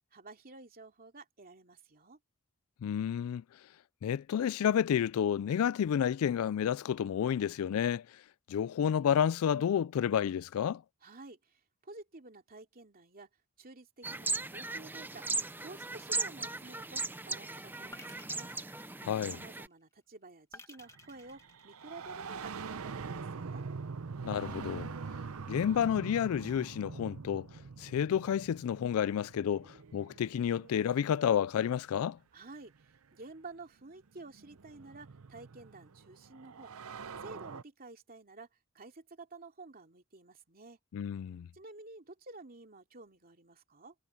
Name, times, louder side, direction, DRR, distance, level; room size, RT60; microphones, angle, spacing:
voice 1, 0.1-2.2 11.0-13.3 13.6-15.2 15.6-18.5 19.3-23.6 32.3-36.7 37.2-38.5 38.7-40.8 41.5-43.9, right 3 dB, 40° right, 2.8 m, -51 dB
voice 2, 2.8-3.4 4.0-8.0 8.5-10.8 19.0-19.4 24.2-24.9 25.5-27.5 27.8-32.2 40.9-41.5, left 8 dB, 65° left, 0.3 m, -30 dB
sound 1, 14.0-19.7, right 3 dB, 10° right, 0.7 m, -37 dB
sound 2, 16.4-17.0 17.9-19.6 20.5-22.3, left 2 dB, 15° left, 1.7 m, -55 dB
sound 3, 20.9-31.5 32.8-32.9 33.9-37.6, right 5 dB, 70° right, 0.7 m, -44 dB
head